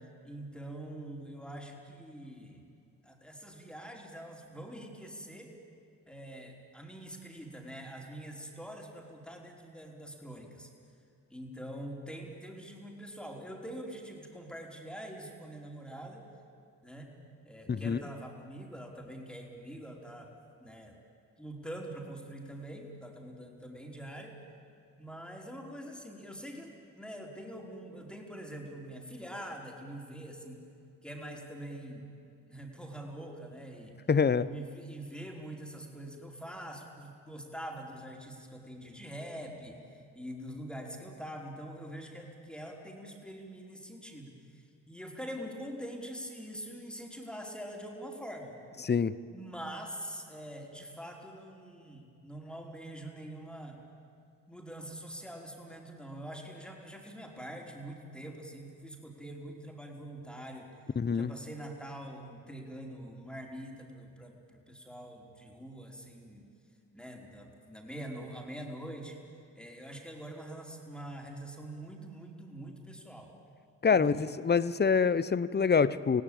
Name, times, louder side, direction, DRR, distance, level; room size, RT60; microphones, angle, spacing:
voice 1, 0.2-2.6 3.0-5.5 6.1-10.7 11.3-16.2 16.8-17.1 17.4-20.3 20.6-21.0 21.4-24.4 25.0-30.6 31.0-32.1 32.5-34.0 34.4-48.6 49.3-53.8 54.5-60.7 61.1-66.5 66.9-69.2 69.6-73.3 73.9-74.3, right 1 dB, ahead, 0 dB, 5.0 m, -44 dB
voice 2, 17.7-18.0 34.1-34.5 48.8-49.2 61.0-61.3 73.8-76.2, left 5 dB, 25° left, 17 dB, 0.9 m, -26 dB
27.0 x 17.0 x 9.0 m, 2.4 s
hypercardioid pair, 50°, 39 cm